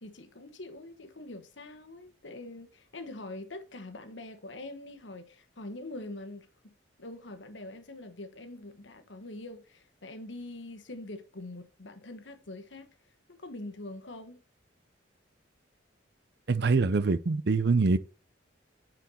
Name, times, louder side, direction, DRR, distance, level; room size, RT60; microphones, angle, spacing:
voice 1, 0.0-6.7 7.0-12.9 13.4-14.4, left 2 dB, 70° left, 1.3 m, -44 dB
voice 2, 16.5-18.0, right 4 dB, 60° right, 0.5 m, -24 dB
9.2 x 4.6 x 4.3 m
head